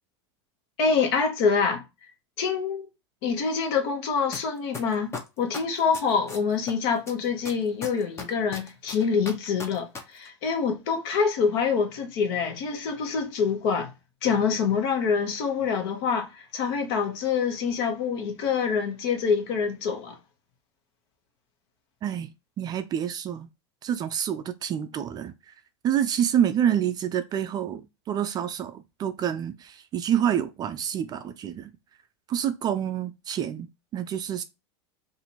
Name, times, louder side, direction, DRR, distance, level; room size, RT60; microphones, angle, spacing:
voice 1, 0.8-1.8 2.4-2.9 3.2-5.1 5.4-13.9 14.2-20.2, left 6 dB, 60° left, 1.1 m, -26 dB
sound 1, 4.3-4.4 4.7-6.7 7.1-10.0 10.2-10.3, left 4 dB, 20° left, 0.8 m, -36 dB
voice 2, 22.6-23.5 23.8-25.3 25.8-27.8 28.1-31.7 32.3-34.4, right 9 dB, 30° right, 0.4 m, -27 dB
2.8 x 2.6 x 4.3 m
hypercardioid pair, 115°, 14 cm